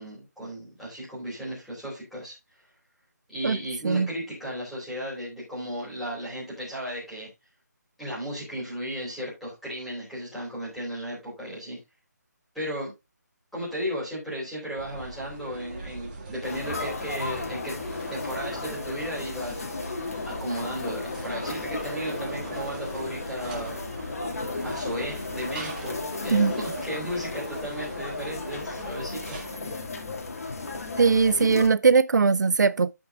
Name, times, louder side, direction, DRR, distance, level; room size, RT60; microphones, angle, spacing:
voice 1, 0.0-2.3 3.3-7.3 8.0-11.8 12.5-12.9 13.5-17.7 18.1-19.6 20.2-23.8 24.6-29.4, equal, ahead, 3.9 m, -35 dB
sound 1, 14.8-29.6, right 3 dB, 30° right, 2.0 m, -41 dB
sound 2, 16.4-31.7, left 3 dB, 55° left, 2.2 m, -34 dB
voice 2, 31.0-32.9, right 5 dB, 80° right, 0.4 m, -20 dB
14.0 x 5.3 x 2.4 m
figure-of-eight pair, 165°, 10 cm